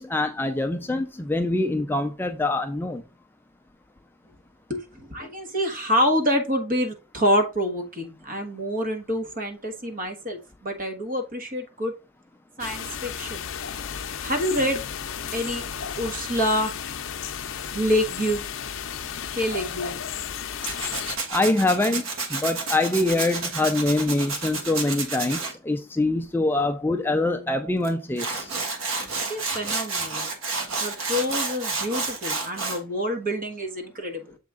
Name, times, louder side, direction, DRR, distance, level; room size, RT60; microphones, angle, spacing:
voice 1, 0.0-3.0 21.3-22.0 22.3-28.5, left 2 dB, 10° left, 0.4 m, -24 dB
voice 2, 4.7-11.9 12.6-13.5 14.2-14.8 15.3-15.6 16.0-16.7 17.7-18.5 19.3-20.0 29.2-30.3 30.8-34.4, equal, 40° right, 1.4 m, -27 dB
sound 1, 12.6-21.2, left 8 dB, 65° left, 0.6 m, -33 dB
Tools, 20.6-25.5 27.8-27.9 28.2-32.8, right 4 dB, 75° right, 1.4 m, -30 dB
7.3 x 3.6 x 3.8 m
head